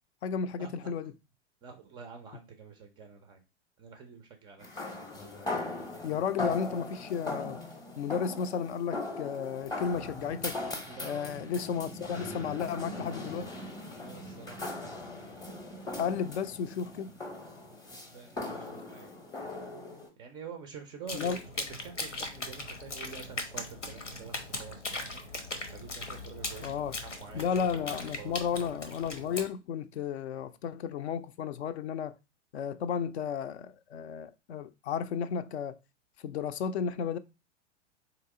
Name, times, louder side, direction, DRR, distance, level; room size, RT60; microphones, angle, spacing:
voice 1, 0.2-1.1 6.0-7.6 8.0-10.6 11.0-13.5 16.0-17.1 21.1-21.4 26.6-26.9 27.3-32.2 32.5-35.8 36.2-37.2, left 7 dB, 65° left, 0.5 m, -33 dB
voice 2, 1.6-3.4 3.8-4.8 10.9-11.4 14.0-15.1 18.1-19.1 20.2-28.5, right 6 dB, 15° right, 0.3 m, -47 dB
sound 1, 4.6-20.1, left 2 dB, 10° left, 0.7 m, -39 dB
sound 2, 21.1-29.5, left 2 dB, 90° left, 0.8 m, -39 dB
3.9 x 2.9 x 3.5 m
figure-of-eight pair, 95°, 36 cm